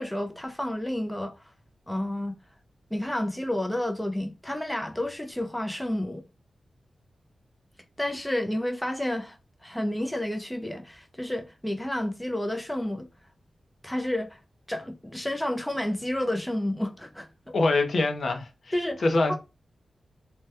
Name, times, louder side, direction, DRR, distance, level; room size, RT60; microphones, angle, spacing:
voice 1, 0.0-1.4 1.9-2.4 2.9-6.2 8.0-9.4 9.6-13.1 13.8-14.4 14.7-17.3 18.7-19.3, left 1 dB, 5° left, 0.5 m, -30 dB
voice 2, 17.5-18.7 19.0-19.3, left 2 dB, 60° left, 0.6 m, -24 dB
2.8 x 2.2 x 3.3 m
wide cardioid pair, 120°, 0 cm